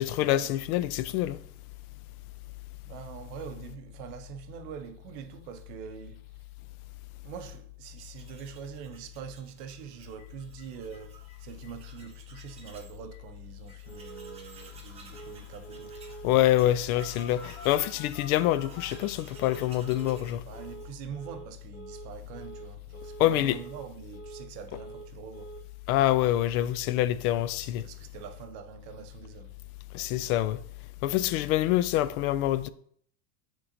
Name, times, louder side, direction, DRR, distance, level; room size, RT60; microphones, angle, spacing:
voice 1, 0.0-1.4 16.2-20.4 23.2-23.6 25.9-27.9 29.9-30.6 31.0-32.7, left 13 dB, 70° left, 0.5 m, -26 dB
voice 2, 2.8-6.4 7.2-16.0 20.4-25.5 27.6-29.6, right 8 dB, 45° right, 0.6 m, -44 dB
Tools, 7.9-13.0 13.3-13.4 13.7-21.3, right 4 dB, 15° right, 0.7 m, -54 dB
Telephone, 10.2-10.3 10.6-10.7 10.9-11.0 11.3-11.7 12.0-12.1 12.3-12.7 13.1-13.2 13.7-14.4 15.1-15.4 15.6-16.4 17.0-19.7 19.9-20.3 20.5-20.9 21.1-21.5 21.7-22.1 22.3-22.7 22.9-23.3 23.5-24.5 24.7-25.1 25.3-25.6, right 3 dB, 85° left, 1.5 m, -46 dB
9.7 x 3.7 x 2.6 m
supercardioid pair, 160°, 46 cm